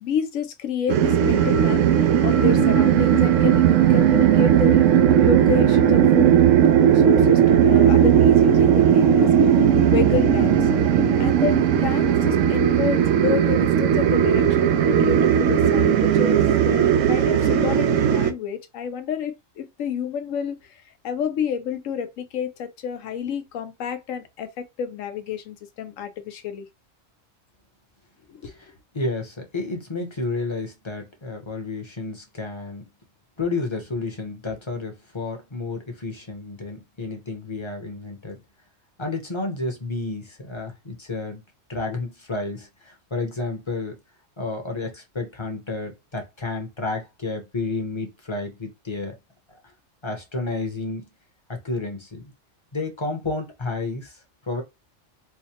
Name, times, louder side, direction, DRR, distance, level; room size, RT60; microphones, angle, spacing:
voice 1, 0.0-1.8 2.2-4.9 5.2-6.3 6.9-10.7 11.2-26.7 28.3-28.5, left 7 dB, 85° left, 1.1 m, -30 dB
sound 1, 0.9-18.3, right 9 dB, 75° right, 0.9 m, -17 dB
voice 2, 28.4-32.8 33.4-38.4 39.0-41.4 41.7-44.0 44.4-49.2 49.5-49.6 50.0-51.0 51.5-52.3 52.7-54.6, left 3 dB, 25° left, 0.8 m, -31 dB
4.7 x 2.1 x 2.8 m
omnidirectional pair, 1.3 m